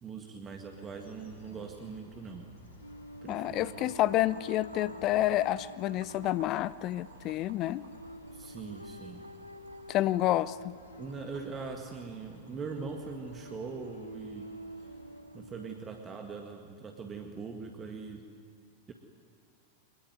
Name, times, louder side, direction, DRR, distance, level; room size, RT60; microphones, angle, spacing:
voice 1, 0.0-2.5 3.2-3.9 8.3-9.2 11.0-14.6 15.3-18.3 18.9-19.0, right 5 dB, 25° right, 4 dB, 1.8 m, -42 dB
sound 1, 0.7-15.2, left 1 dB, 70° left, 4.1 m, -56 dB
sound 2, 2.8-15.8, equal, 90° right, 0.7 m, -48 dB
voice 2, 3.3-7.8 9.9-10.7, left 14 dB, 35° left, 18 dB, 0.5 m, -29 dB
Boiling, 3.3-16.5, right 4 dB, 70° right, 2.4 m, -56 dB
24.0 x 21.5 x 9.3 m, 2.3 s
figure-of-eight pair, 90°, 0 cm